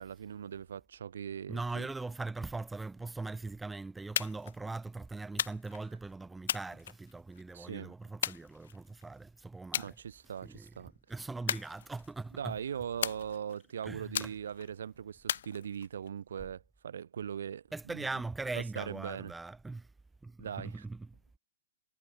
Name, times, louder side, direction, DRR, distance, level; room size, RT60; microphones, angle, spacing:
voice 1, 0.0-1.9 7.5-7.9 9.7-10.9 12.3-18.1 18.5-19.3 20.4-20.8, right 8 dB, 85° right, 4.3 m, -40 dB
voice 2, 1.5-10.0 10.4-10.7 11.1-12.6 13.8-14.3 17.7-19.9 20.2-21.2, right 3 dB, 5° right, 0.5 m, -40 dB
sound 1, 4.2-4.6 5.4-5.9 6.5-7.4 8.2-9.0 9.7-9.9 10.3-10.7 11.5-12.3 13.0-13.6 14.1-14.7 15.3-16.1, left 10 dB, 65° left, 1.2 m, -36 dB
hypercardioid pair, 170°, 0 cm